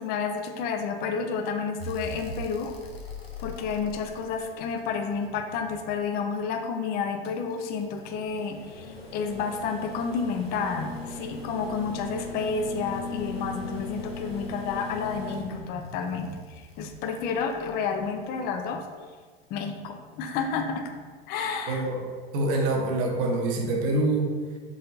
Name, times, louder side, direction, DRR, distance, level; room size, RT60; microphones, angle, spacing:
voice 1, 0.0-2.7 3.4-18.8 19.5-20.9 21.3-21.8, left 5 dB, 35° left, 5 dB, 0.4 m, -30 dB
sound 1, 1.8-6.0 7.2-18.4 20.0-20.1, left 2 dB, 90° left, 0.7 m, -40 dB
voice 2, 21.7-22.0 22.3-24.3, right 2 dB, 50° right, 1 dB, 0.9 m, -25 dB
3.9 x 3.7 x 2.7 m, 1.5 s
figure-of-eight pair, 85°, 30 cm